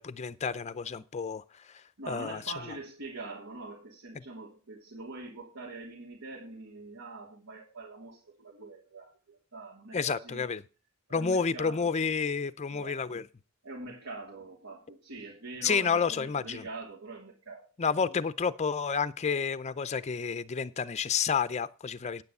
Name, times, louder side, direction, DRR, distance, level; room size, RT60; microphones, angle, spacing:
voice 1, 0.0-1.8 2.1-2.4 9.9-10.6 11.1-13.2 15.6-16.6 17.8-22.2, left 5 dB, 30° left, 0.5 m, -30 dB
voice 2, 2.0-10.4 11.1-12.0 12.7-13.0 13.6-18.3, right 3 dB, 75° right, 2.8 m, -44 dB
9.5 x 9.2 x 5.4 m
head